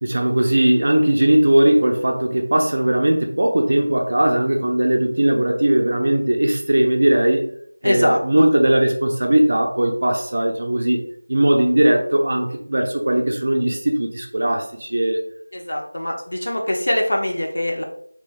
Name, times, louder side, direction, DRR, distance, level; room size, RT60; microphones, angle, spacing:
voice 1, 0.0-7.4 7.8-15.2, right 1 dB, 40° right, 3 dB, 0.4 m, -18 dB
voice 2, 7.8-8.4 15.5-17.8, left 1 dB, 60° left, 0 dB, 0.8 m, -23 dB
3.3 x 3.3 x 2.5 m, 0.63 s
figure-of-eight pair, 180°, 0 cm